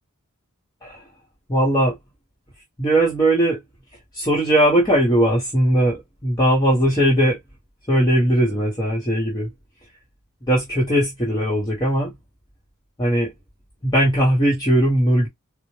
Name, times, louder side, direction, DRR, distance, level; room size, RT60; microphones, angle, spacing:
voice 1, 1.5-1.9 2.8-3.6 4.1-7.4 7.9-9.5 10.5-12.1 13.0-13.3 13.8-15.3, right 1 dB, 20° left, 1.1 m, -19 dB
4.1 x 2.1 x 3.2 m
head